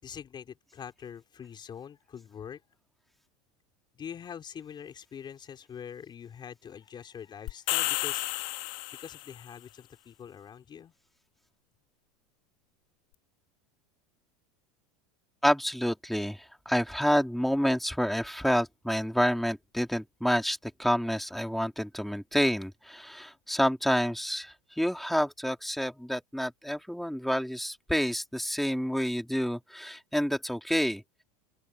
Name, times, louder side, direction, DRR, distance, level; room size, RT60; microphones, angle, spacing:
voice 1, 0.0-2.6 3.9-8.4 8.9-10.9, left 8 dB, 25° left, 4.6 m, -44 dB
sound 1, 7.5-9.4, left 21 dB, 55° left, 1.4 m, -31 dB
voice 2, 15.4-31.0, equal, ahead, 2.7 m, -28 dB
open air
supercardioid pair, 130°, 17 cm